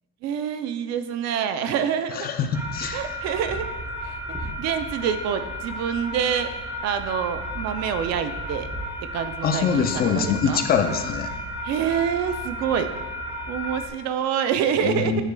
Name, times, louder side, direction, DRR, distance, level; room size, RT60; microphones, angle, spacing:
voice 1, 0.2-2.3 2.9-3.7 4.0-4.2 4.6-6.5 6.8-8.7 9.1-10.6 11.6-12.9 13.5-15.2, right 8 dB, 50° right, 10 dB, 0.5 m, -26 dB
voice 2, 2.1-3.2 9.4-11.3 14.8-15.2, left 6 dB, 30° left, 7 dB, 0.4 m, -24 dB
sound 1, 2.5-13.9, equal, 5° right, 0.8 m, -33 dB
9.7 x 4.6 x 2.2 m, 1.2 s
cardioid pair, 140°, 35 cm